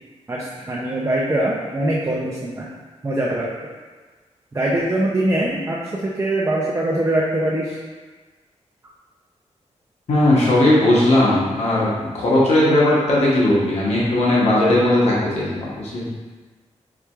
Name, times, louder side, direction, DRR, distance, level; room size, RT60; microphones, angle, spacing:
voice 1, 0.3-2.7 3.0-3.5 4.5-7.8, right 1 dB, 25° right, -4 dB, 0.6 m, -22 dB
voice 2, 10.1-16.1, left 1 dB, 65° left, -7 dB, 1.2 m, -17 dB
4.8 x 4.2 x 2.4 m, 1.4 s
cardioid pair, 90°, 12 cm